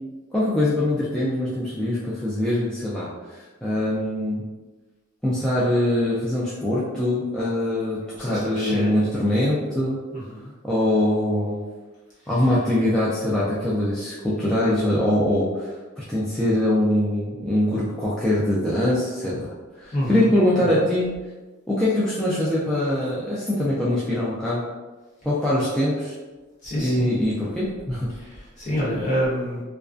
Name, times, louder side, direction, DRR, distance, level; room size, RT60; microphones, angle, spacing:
voice 1, 0.3-3.1 3.6-4.4 5.2-10.0 10.6-11.6 12.3-15.7 16.0-21.1 21.7-24.6 25.2-26.1 26.8-28.1, left 1 dB, 5° left, -9 dB, 0.3 m, -23 dB
voice 2, 8.2-9.1 9.4-9.5 10.1-10.5 12.3-12.5 19.9-20.3 20.6-20.8 26.6-27.1 28.1-29.6, equal, 40° left, -8 dB, 1.0 m, -28 dB
2.3 x 2.2 x 2.4 m, 1.2 s
head